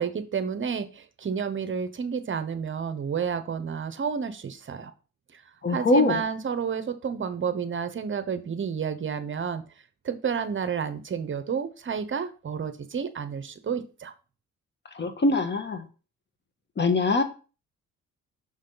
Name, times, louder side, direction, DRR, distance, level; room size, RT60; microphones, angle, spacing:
voice 1, 0.0-4.9 5.3-5.4 5.7-9.6 10.0-14.1, right 6 dB, 40° right, 10 dB, 0.9 m, -30 dB
voice 2, 5.6-6.2 14.9-15.8 16.8-17.2, left 3 dB, 35° left, 8 dB, 1.4 m, -23 dB
6.4 x 6.0 x 3.9 m, 0.34 s
cardioid pair, 90°, 30 cm